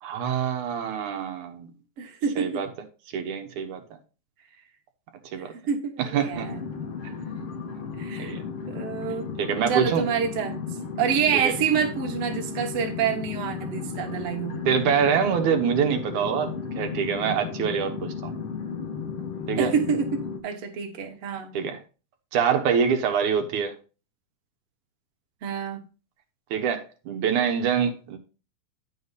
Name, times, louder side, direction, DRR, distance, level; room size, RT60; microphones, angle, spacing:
voice 1, 0.0-1.7 2.4-2.7 3.1-3.8 5.3-5.5 6.0-6.5 8.2-8.4 9.4-10.0 11.4-11.5 14.7-18.3 19.5-19.7 21.5-21.8 22.3-23.8 26.5-28.2, right 7 dB, 80° right, 2.5 m, -25 dB
voice 2, 2.0-2.6 5.7-6.6 8.0-8.4 8.7-9.3 9.7-14.7 19.6-21.6 25.4-25.8, right 7 dB, 55° right, 2.1 m, -27 dB
sound 1, 6.3-20.4, left 6 dB, 55° left, 1.5 m, -34 dB
9.5 x 6.2 x 4.0 m
omnidirectional pair, 3.4 m